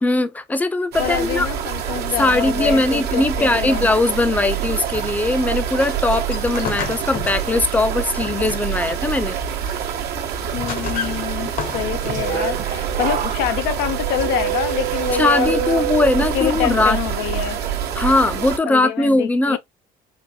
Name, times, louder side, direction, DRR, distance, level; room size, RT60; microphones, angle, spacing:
voice 1, 0.0-1.5 2.2-9.4 15.2-17.0 18.0-19.6, left 2 dB, 10° left, 0.6 m, -20 dB
sound 1, 0.9-18.6, right 8 dB, 70° right, 1.0 m, -26 dB
voice 2, 1.0-3.9 10.5-15.9 16.1-17.6 18.6-19.6, left 11 dB, 90° left, 0.6 m, -26 dB
sound 2, 4.6-8.9 9.3-9.8 10.3-12.3, left 7 dB, 55° left, 0.9 m, -33 dB
sound 3, 11.7-16.7 17.1-17.6, right 14 dB, 50° right, 0.8 m, -27 dB
4.2 x 2.5 x 2.8 m
cardioid pair, 110°, 17 cm